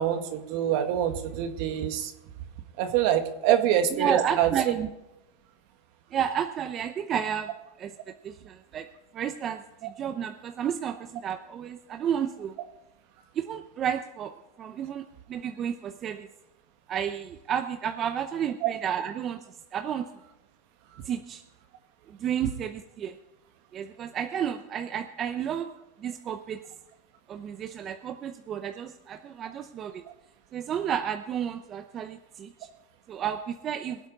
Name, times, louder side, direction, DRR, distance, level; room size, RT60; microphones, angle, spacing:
voice 1, 0.0-2.1 2.8-4.7 18.6-18.7, right 10 dB, 60° right, 7 dB, 1.7 m, -25 dB
voice 2, 3.9-4.9 6.1-7.5 7.8-7.9 8.2-8.9 9.1-12.5 13.3-14.3 14.6-16.3 16.9-19.4 19.7-20.0 21.0-21.4 22.1-23.1 23.7-25.7 26.0-26.6 27.3-30.0 30.5-32.7 33.1-34.0, right 8 dB, 30° right, 7 dB, 0.7 m, -31 dB
22.5 x 8.2 x 4.0 m, 0.97 s
supercardioid pair, 130°, 0 cm